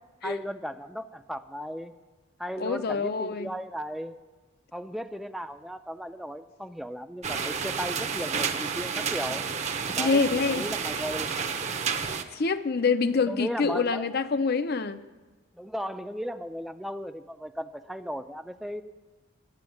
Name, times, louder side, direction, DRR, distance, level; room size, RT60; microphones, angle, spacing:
voice 1, 0.2-1.9 2.4-4.2 4.7-9.4 9.9-11.3 13.3-14.3 15.6-18.8, equal, ahead, 9 dB, 0.4 m, -36 dB
voice 2, 2.6-3.5 10.0-10.7 12.3-15.0, left 4 dB, 50° left, 12 dB, 0.6 m, -26 dB
sound 1, 7.2-12.2, right 6 dB, 35° right, 0.7 m, -30 dB
10.5 x 7.7 x 9.2 m, 1.3 s
head